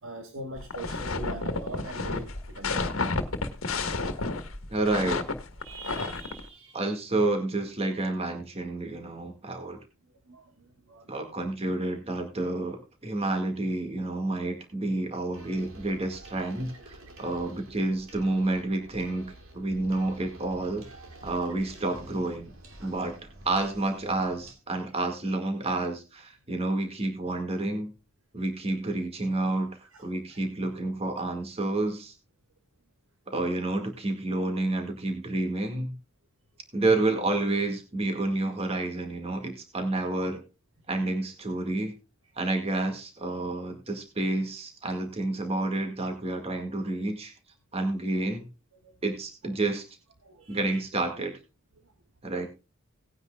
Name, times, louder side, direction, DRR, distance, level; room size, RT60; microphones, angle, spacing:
voice 1, 0.0-2.9 3.7-3.9 5.6-6.9 10.3-11.1 22.8-22.9 29.9-30.0 48.8-48.9 50.2-50.8 52.3-52.4, right 2 dB, 70° right, 1.5 m, -42 dB
sound 1, 0.6-6.4, left 3 dB, 90° left, 1.5 m, -31 dB
voice 2, 4.7-5.2 6.7-9.8 11.1-20.9 21.2-22.5 22.8-23.2 23.5-27.9 28.3-32.1 33.3-36.0 36.7-40.4 40.9-41.9 42.4-47.3 47.7-48.5 49.0-49.9 50.5-51.4 52.2-52.5, right 2 dB, 30° right, 1.9 m, -29 dB
sound 2, 15.3-24.5, right 1 dB, 90° right, 2.7 m, -49 dB
18.5 x 9.6 x 2.3 m
head